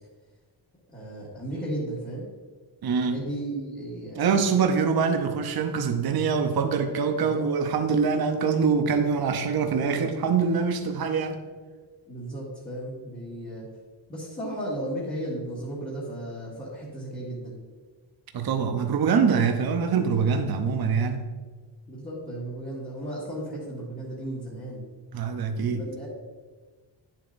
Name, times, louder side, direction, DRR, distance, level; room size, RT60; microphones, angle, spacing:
voice 1, 0.9-2.3 3.1-4.4 7.1-7.5 12.1-13.7 14.1-17.6 20.5-20.7 21.9-24.8 25.6-26.1, right 1 dB, 20° left, -8 dB, 1.7 m, -35 dB
voice 2, 2.8-3.2 4.2-11.4 18.3-21.3 25.1-25.8, right 5 dB, 50° right, 6 dB, 0.8 m, -24 dB
10.5 x 7.2 x 2.6 m, 1.4 s
wide cardioid pair, 150°, 47 cm